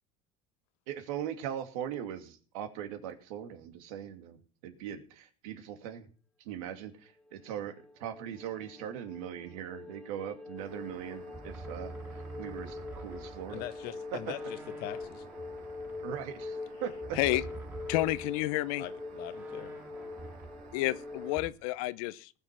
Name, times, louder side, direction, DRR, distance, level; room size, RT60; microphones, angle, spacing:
voice 1, 0.9-4.4 4.6-6.1 6.4-7.7 8.0-13.6 16.0-17.4, right 9 dB, 80° right, 2.6 m, -40 dB
sound 1, 7.3-21.4, left 3 dB, 5° left, 0.6 m, -43 dB
sound 2, 10.6-21.4, right 8 dB, 50° right, 2.5 m, -55 dB
sound 3, 11.3-13.9 14.3-18.5 18.8-18.9 19.3-21.5, right 3 dB, 10° right, 2.9 m, -47 dB
voice 2, 13.5-15.2 18.8-19.7, left 14 dB, 60° left, 1.4 m, -42 dB
voice 3, 17.9-18.8 20.7-22.3, left 18 dB, 80° left, 0.8 m, -30 dB
19.0 x 6.7 x 5.9 m
supercardioid pair, 115°, 18 cm